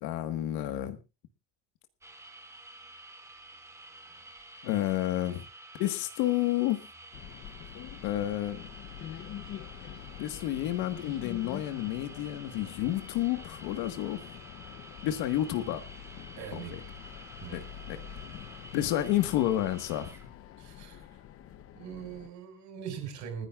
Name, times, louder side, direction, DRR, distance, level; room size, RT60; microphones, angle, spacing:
voice 1, 0.0-1.0 4.6-5.4 5.8-6.9 8.0-8.6 10.2-14.2 15.0-15.8 16.5-16.8 17.5-20.1, left 13 dB, 70° left, 9 dB, 1.6 m, -30 dB
sound 1, 2.0-20.3, right 2 dB, 10° right, 2.1 m, -50 dB
sound 2, 7.1-22.3, left 10 dB, 35° left, 0.8 m, -46 dB
voice 2, 16.4-16.8 17.4-17.7 20.6-21.2 21.7-23.5, right 8 dB, 50° right, 5 dB, 5.8 m, -41 dB
29.0 x 10.5 x 2.4 m, 0.29 s
cardioid pair, 170°, 38 cm